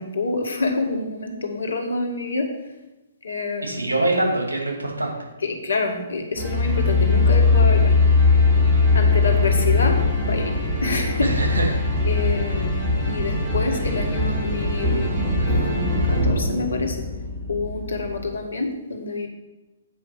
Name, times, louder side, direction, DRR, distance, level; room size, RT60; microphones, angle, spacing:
voice 1, 0.0-2.5 3.2-3.9 5.4-7.9 8.9-11.3 12.1-12.8 13.1-15.1 15.4-17.0 17.5-19.3, left 3 dB, 65° left, 3 dB, 1.6 m, -27 dB
voice 2, 3.6-5.1 11.2-11.8 12.4-12.6, right 2 dB, 70° right, 0 dB, 2.4 m, -24 dB
sound 1, 6.4-18.3, left 3 dB, 10° right, 2.5 m, -21 dB
8.5 x 5.2 x 6.0 m, 1.1 s
figure-of-eight pair, 125°, 0 cm